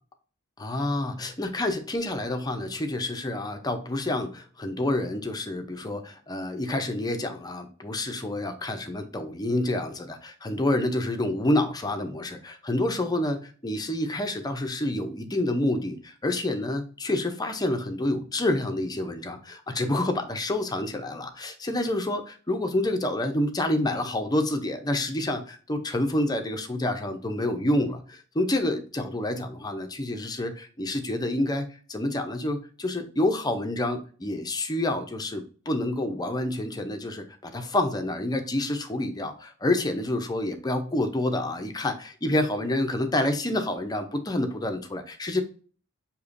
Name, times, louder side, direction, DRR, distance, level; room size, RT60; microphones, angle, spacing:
voice 1, 0.6-45.4, left 1 dB, 20° left, 6 dB, 0.5 m, -28 dB
6.5 x 2.8 x 2.5 m, 0.41 s
head